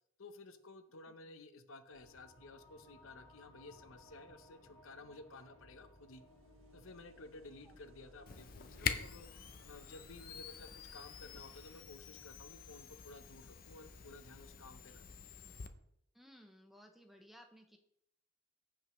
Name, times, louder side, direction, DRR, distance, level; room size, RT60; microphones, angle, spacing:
voice 1, 0.2-6.2 6.7-9.3 9.7-15.0, left 2 dB, 80° left, 9 dB, 0.8 m, -54 dB
sound 1, 1.8-12.8, left 1 dB, 15° left, 1.1 m, -65 dB
sound 2, 1.9-11.8, right 1 dB, 85° right, 1.6 m, -65 dB
Camera, 8.3-15.7, left 7 dB, 45° left, 0.5 m, -45 dB
voice 2, 16.1-17.8, equal, ahead, 4 dB, 0.6 m, -59 dB
15.0 x 5.2 x 3.1 m, 0.77 s
head